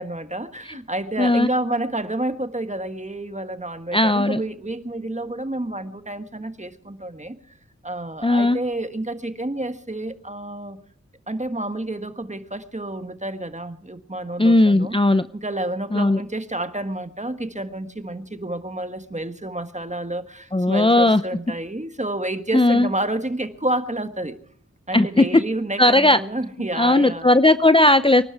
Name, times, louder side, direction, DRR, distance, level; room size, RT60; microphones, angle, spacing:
voice 1, 0.0-7.3 7.8-10.8 11.3-15.0 15.3-24.4 24.9-27.3, right 1 dB, 25° right, 9 dB, 1.5 m, -29 dB
voice 2, 1.2-1.5 3.9-4.4 8.2-8.6 14.4-15.3 15.9-16.2 20.5-21.2 22.5-22.9 24.9-25.4 25.8-26.2 26.7-28.2, left 2 dB, 20° left, 12 dB, 0.6 m, -17 dB
24.5 x 12.0 x 4.7 m, 0.63 s
wide cardioid pair, 40°, 30 cm